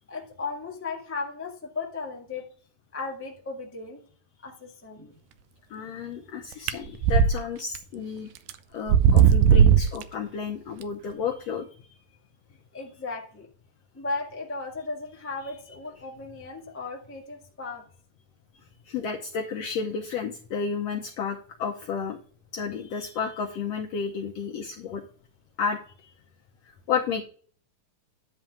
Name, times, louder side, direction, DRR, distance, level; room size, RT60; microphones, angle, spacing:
voice 1, 0.1-2.5 2.9-4.0 4.4-5.2 5.8-5.9 12.7-13.5 13.9-17.8, left 3 dB, 20° left, -1 dB, 0.3 m, -36 dB
voice 2, 5.7-8.3 8.7-11.7 18.8-22.2 22.5-25.0 25.6-26.1 26.6-27.2, left 6 dB, 75° left, 1 dB, 1.5 m, -32 dB
sound 1, 6.7-7.3 7.8-7.9 8.5-8.6 8.9-10.0, right 8 dB, 80° right, 1.9 m, -16 dB
10.5 x 3.5 x 7.1 m, 0.44 s
omnidirectional pair, 3.8 m